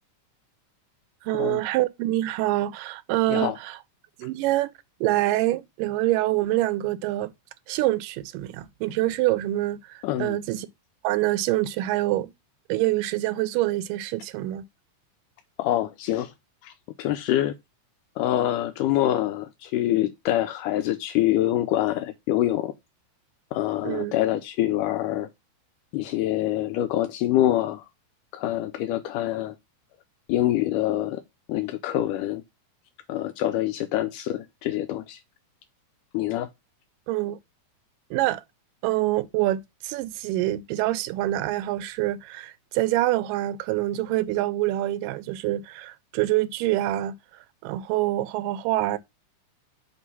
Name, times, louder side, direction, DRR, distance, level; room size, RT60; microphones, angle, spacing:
voice 1, 1.2-3.8 4.2-4.7 5.0-7.3 7.7-10.7 11.0-12.3 12.7-14.6 23.8-24.2 37.1-37.4 38.1-38.4 38.8-47.1 47.6-49.0, right 16 dB, 85° right, 2.2 m, -26 dB
voice 2, 10.0-10.4 15.6-16.3 16.6-16.7 17.0-17.6 18.2-22.7 23.5-25.3 25.9-27.9 28.3-29.6 30.3-31.2 31.5-32.4 33.1-35.2 36.1-36.5, left 13 dB, 80° left, 2.1 m, -25 dB
6.5 x 3.0 x 5.3 m
omnidirectional pair, 3.8 m